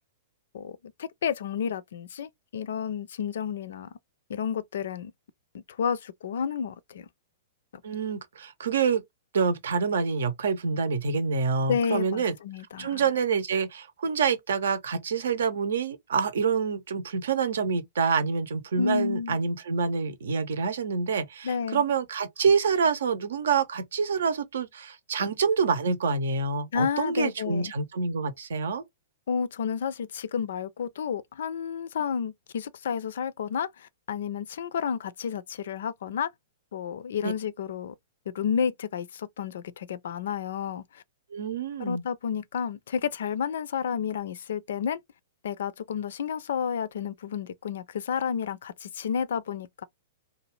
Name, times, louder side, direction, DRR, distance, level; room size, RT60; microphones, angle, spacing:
voice 1, 0.5-3.9 4.3-5.1 5.7-7.1 11.7-13.0 18.8-19.4 21.4-21.8 26.7-27.7 29.3-36.3 36.7-37.9 38.3-41.0 41.8-45.0 45.4-49.8, left 7 dB, 60° left, 0.4 m, -31 dB
voice 2, 7.8-9.0 9.3-12.3 12.8-28.8 37.2-37.3 41.3-42.0, right 5 dB, 65° right, 0.7 m, -27 dB
2.7 x 2.3 x 3.0 m
figure-of-eight pair, 105°, 0 cm